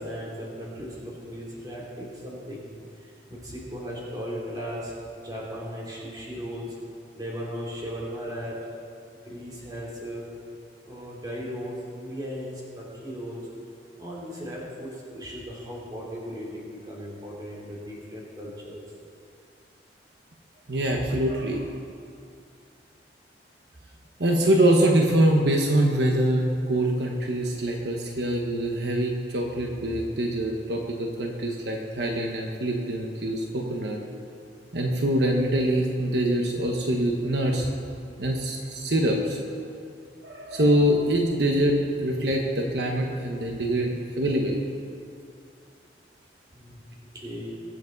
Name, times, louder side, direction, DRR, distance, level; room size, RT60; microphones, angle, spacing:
voice 1, 0.0-2.7 3.0-4.9 5.2-6.7 7.1-8.5 9.2-10.2 10.8-13.4 14.0-18.8 46.5-46.8 47.1-47.5, equal, 25° right, -4 dB, 3.2 m, -37 dB
voice 2, 20.7-21.7 24.2-34.0 34.7-37.8 38.2-39.4 40.2-44.6, right 1 dB, 75° right, 1 dB, 1.2 m, -24 dB
23.0 x 8.3 x 4.0 m, 2.4 s
head